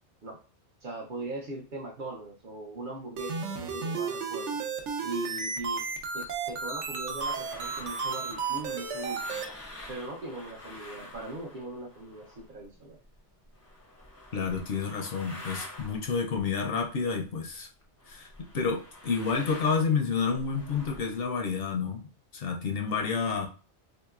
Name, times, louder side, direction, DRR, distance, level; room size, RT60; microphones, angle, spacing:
voice 1, 0.8-4.6 5.0-5.8 6.1-9.3 9.9-13.0, right 2 dB, 55° right, 0 dB, 0.7 m, -40 dB
sound 1, 3.2-9.4, right 5 dB, 85° right, 1.0 m, -33 dB
sound 2, 6.0-12.7 12.9-17.5 17.8-21.3, left 1 dB, 20° left, 0.4 m, -47 dB
voice 2, 14.3-17.7 18.1-22.1 22.3-23.5, left 5 dB, 65° left, 3 dB, 0.7 m, -29 dB
3.5 x 2.9 x 2.3 m, 0.38 s
omnidirectional pair, 1.2 m